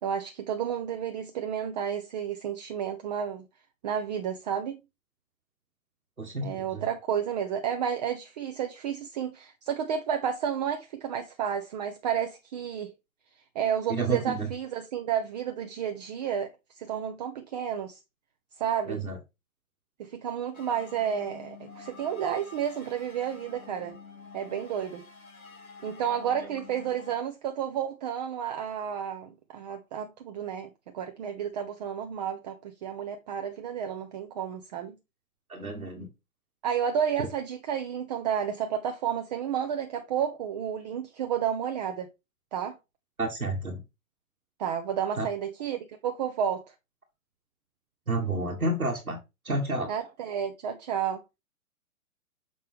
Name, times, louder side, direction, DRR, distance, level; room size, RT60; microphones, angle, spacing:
voice 1, 0.0-3.5 3.8-4.8 6.4-12.9 13.5-16.5 16.7-18.0 18.6-19.0 20.0-24.0 24.3-25.0 25.8-35.0 36.6-42.1 42.5-42.8 44.6-46.7 49.9-51.2, right 8 dB, 30° right, 0.6 m, -31 dB
voice 2, 6.2-6.8 13.9-14.5 18.9-19.2 35.5-36.1 43.2-43.8 45.2-45.3 48.1-49.2 49.4-49.9, right 2 dB, 90° right, 1.5 m, -30 dB
sound 1, 20.5-27.2, left 4 dB, 80° left, 1.9 m, -48 dB
6.6 x 5.3 x 3.1 m
figure-of-eight pair, 115°, 42 cm